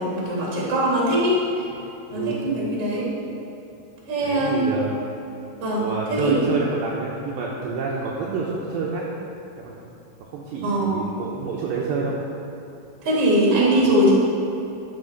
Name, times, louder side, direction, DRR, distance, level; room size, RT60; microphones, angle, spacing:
voice 1, 0.0-1.4 2.1-3.1 4.1-4.8 5.6-6.4 10.6-11.0 13.0-14.1, right 1 dB, 35° right, -4 dB, 3.1 m, -21 dB
voice 2, 4.2-5.0 5.8-9.0 9.6-9.7 10.3-12.2, right 4 dB, 75° right, -4 dB, 3.0 m, -28 dB
13.0 x 9.2 x 5.2 m, 2.9 s
omnidirectional pair, 5.6 m